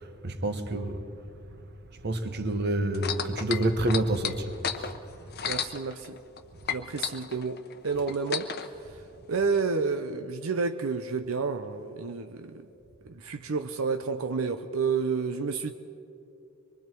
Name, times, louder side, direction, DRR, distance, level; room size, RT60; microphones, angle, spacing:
voice 1, 0.2-1.0 2.0-4.5, right 1 dB, 50° right, 1.3 m, -27 dB
sound 1, 2.9-6.4 6.7-8.7 9.5-9.6, left 8 dB, 50° left, 0.9 m, -33 dB
voice 2, 5.5-6.2 6.7-8.5 8.8-9.0 9.3-12.6 13.0-15.7, right 5 dB, 90° right, 0.7 m, -30 dB
24.5 x 23.0 x 4.6 m
head